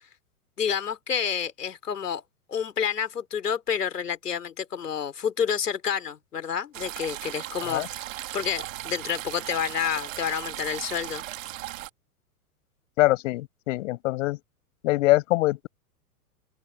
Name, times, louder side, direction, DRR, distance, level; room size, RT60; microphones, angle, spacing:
voice 1, 0.6-2.2 2.5-8.0 8.3-11.2, left 7 dB, 70° left, 4.0 m, -29 dB
sound 1, 6.7-11.9, right 15 dB, 50° right, 2.6 m, -37 dB
voice 2, 13.0-14.4 14.8-15.7, left 18 dB, 50° left, 7.8 m, -23 dB
open air
figure-of-eight pair, 105°, 48 cm